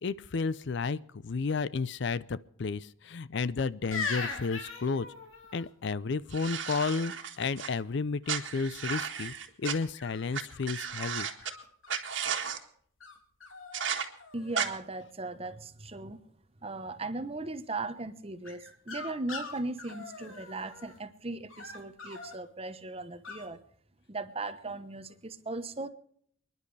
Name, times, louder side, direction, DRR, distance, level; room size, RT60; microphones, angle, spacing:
voice 1, 0.0-5.1 5.5-11.3, left 4 dB, 60° left, 18 dB, 0.5 m, -32 dB
sound 1, 3.9-5.7 8.8-9.2 9.9-10.8 11.4-12.3 13.0-13.1 13.4-13.9 14.1-14.8 18.4-21.0 21.5-22.4 23.2-23.4, left 4 dB, 90° left, 3.1 m, -41 dB
sound 2, 6.3-7.7 8.3-9.7 10.3-10.4 10.7-11.5 11.9-12.6 13.7-14.0 14.5-14.7, right 7 dB, 65° right, 1.8 m, -34 dB
voice 2, 14.3-16.2 16.6-23.6 24.1-25.9, right 2 dB, 30° right, 11 dB, 1.0 m, -38 dB
29.5 x 11.0 x 3.3 m, 0.62 s
head